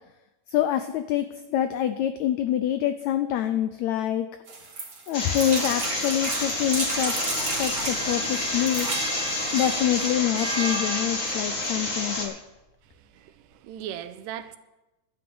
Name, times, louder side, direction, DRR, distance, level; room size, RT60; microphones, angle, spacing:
voice 1, 0.5-4.3 5.1-8.9 9.5-12.3, left 11 dB, 85° left, 1.6 m, -26 dB
sound 1, 4.5-8.0 8.5-9.1 9.7-9.8 10.0-10.1, right 3 dB, 35° right, 1.5 m, -33 dB
sound 2, 5.1-12.3, left 2 dB, 30° left, 1.5 m, -29 dB
sound 3, 6.6-11.6, right 1 dB, 65° right, 0.4 m, -35 dB
voice 2, 12.8-14.6, right 10 dB, 85° right, 2.3 m, -39 dB
11.5 x 8.0 x 7.8 m
omnidirectional pair, 3.8 m